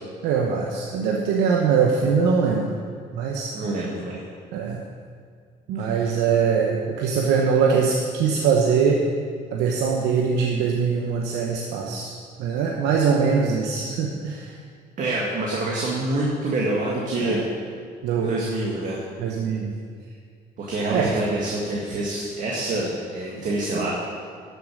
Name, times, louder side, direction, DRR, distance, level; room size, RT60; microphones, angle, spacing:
voice 1, 0.2-2.7 3.1-3.5 4.5-4.8 5.7-9.0 9.5-12.1 12.4-14.6 17.2-17.4 18.0-18.3 19.2-19.7 20.9-21.1, right 6 dB, 85° right, 0 dB, 1.0 m, -22 dB
voice 2, 3.5-4.2 5.8-6.1 15.0-17.4 18.2-19.1 20.6-23.9, right 2 dB, 50° right, -3 dB, 1.8 m, -26 dB
10.5 x 6.8 x 6.2 m, 2.1 s
cardioid pair, 110°, 17 cm